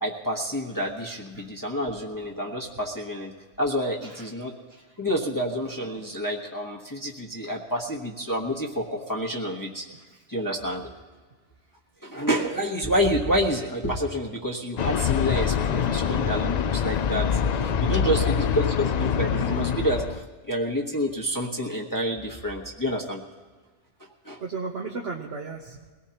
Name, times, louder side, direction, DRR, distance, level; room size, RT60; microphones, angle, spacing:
voice 1, 0.0-4.6 5.0-9.9 10.3-10.9 12.0-23.2 24.2-24.4, equal, 20° left, -2 dB, 1.2 m, -28 dB
sound 1, 14.8-20.2, left 7 dB, 55° left, 0.5 m, -25 dB
voice 2, 17.4-18.1 24.4-25.9, right 4 dB, 60° right, 0 dB, 1.2 m, -35 dB
22.0 x 18.0 x 2.9 m, 1.4 s
omnidirectional pair, 1.2 m